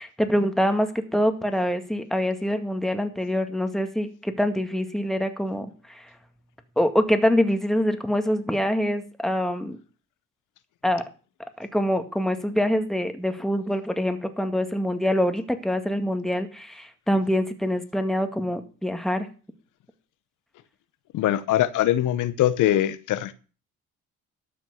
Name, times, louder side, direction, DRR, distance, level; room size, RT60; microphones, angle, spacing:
voice 1, 0.0-6.1 6.8-9.8 10.8-11.0 11.6-19.3, equal, ahead, 1.9 m, -25 dB
voice 2, 21.1-23.4, left 13 dB, 85° left, 0.9 m, -22 dB
13.0 x 6.1 x 7.1 m
cardioid pair, 90°, 30 cm